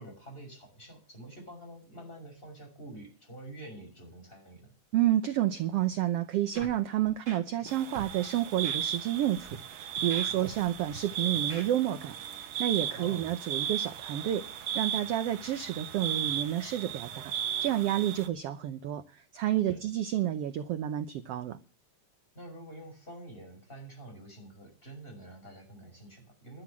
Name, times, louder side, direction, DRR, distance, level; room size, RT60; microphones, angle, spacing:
voice 1, 0.0-4.7 10.3-10.6 12.9-13.3 19.7-19.8 22.3-26.6, right 1 dB, 15° left, 6.5 m, -47 dB
voice 2, 4.9-17.3 17.6-19.0 19.3-21.6, right 12 dB, 70° right, 1.6 m, -30 dB
Scratching (performance technique), 6.5-6.8 7.1-7.7 7.9-8.1 8.6-8.8 9.3-9.6 10.0-11.0 11.4-11.7, right 3 dB, 25° right, 2.3 m, -43 dB
sound 1, 7.7-18.3, right 9 dB, 85° right, 2.6 m, -35 dB
12.5 x 7.9 x 8.6 m
omnidirectional pair, 3.5 m